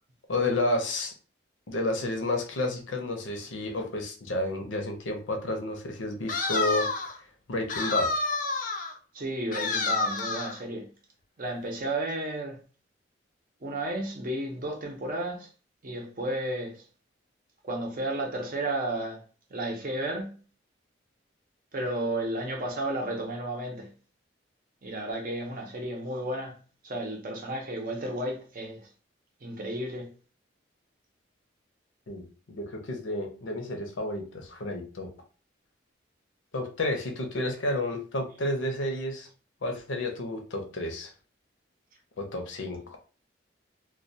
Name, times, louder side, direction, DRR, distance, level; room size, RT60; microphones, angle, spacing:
voice 1, 0.3-1.1 1.7-6.9 7.5-8.2 32.1-35.1 36.5-39.3 39.6-41.1 42.2-43.0, left 1 dB, 80° left, 0.6 m, -31 dB
sound 1, 6.3-7.2 7.7-8.9 9.5-10.6, left 3 dB, 40° left, 0.3 m, -29 dB
voice 2, 9.1-10.9 11.4-12.6 13.6-15.5 15.8-16.9 17.6-19.2 19.5-20.4 21.7-23.9 24.8-26.6 26.8-28.9 29.4-30.1, right 1 dB, 45° right, 0.6 m, -33 dB
2.2 x 2.2 x 2.6 m
head